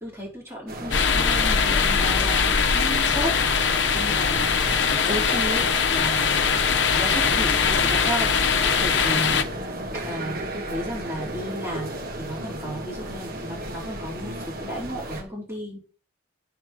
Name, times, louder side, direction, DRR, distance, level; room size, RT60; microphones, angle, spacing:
voice 1, 0.0-4.6 4.9-6.4 6.9-9.4 10.0-15.8, equal, 15° right, -4 dB, 4.1 m, -34 dB
sound 1, 0.7-15.2, right 1 dB, 50° right, 1.7 m, -34 dB
sound 2, 0.9-9.4, left 6 dB, 65° left, 0.8 m, -22 dB
9.2 x 4.3 x 6.2 m, 0.36 s
head